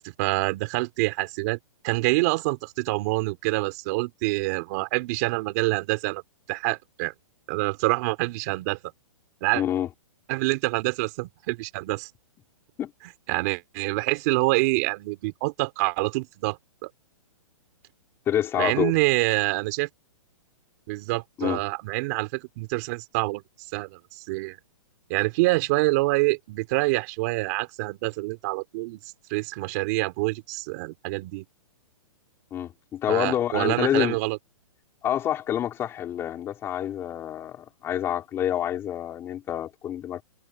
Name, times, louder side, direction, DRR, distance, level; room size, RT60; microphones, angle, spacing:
voice 1, 0.0-1.6 1.8-6.2 6.5-7.1 7.5-8.8 9.4-9.6 10.3-12.1 13.3-16.9 18.5-19.9 20.9-23.4 23.7-24.6 25.1-29.0 29.3-31.5 33.1-34.4, right 23 dB, 30° right, 4.1 m, -26 dB
voice 2, 9.5-9.9 12.8-12.9 18.3-18.9 21.4-21.6 32.5-34.2 35.0-40.2, left 10 dB, 15° left, 4.8 m, -27 dB
hypercardioid pair, 170°, 18 cm